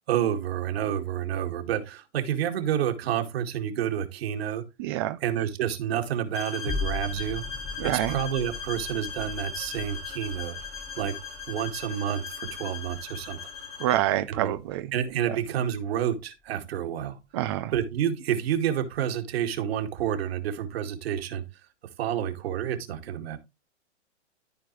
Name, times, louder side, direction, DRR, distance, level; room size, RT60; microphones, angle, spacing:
voice 1, 0.1-4.6 5.2-7.4 7.8-10.6 11.0-11.1 11.5-13.4 14.3-14.5 14.9-17.2 17.7-21.4 22.0-23.4, right 10 dB, 55° right, 2.2 m, -29 dB
voice 2, 4.8-5.2 7.8-8.1 13.8-14.9 15.3-15.4 17.3-17.7, right 14 dB, 25° right, 0.4 m, -27 dB
sound 1, 6.3-14.1, left 6 dB, 85° left, 5.3 m, -38 dB
sound 2, 6.7-15.2 15.7-15.8, left 4 dB, 15° left, 1.5 m, -40 dB
14.0 x 4.7 x 3.2 m
hypercardioid pair, 130°, 35 cm